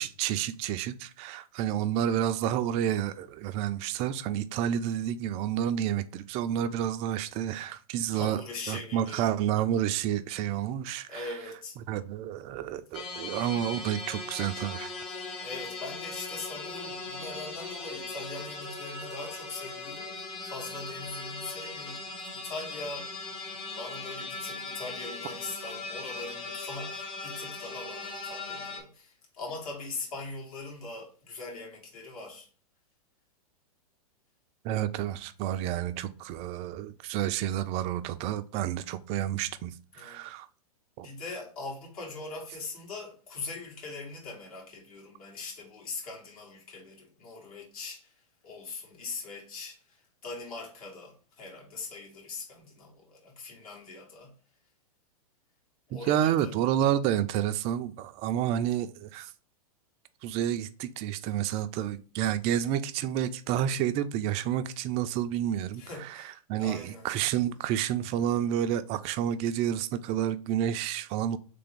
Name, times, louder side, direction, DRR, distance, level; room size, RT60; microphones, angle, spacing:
voice 1, 0.0-8.4 8.7-11.3 11.9-14.9 34.6-40.5 41.0-41.1 55.9-59.3 60.2-71.4, right 10 dB, 30° right, 0.4 m, -30 dB
voice 2, 8.1-9.2 11.1-11.8 15.4-23.1 23.8-32.5 39.9-40.3 41.0-48.1 48.4-54.3 55.9-56.5 65.8-67.1, left 3 dB, 65° left, 2.0 m, -41 dB
sound 1, 12.9-28.8, left 3 dB, 30° left, 1.1 m, -39 dB
3.4 x 3.4 x 3.6 m
hypercardioid pair, 110°, 20 cm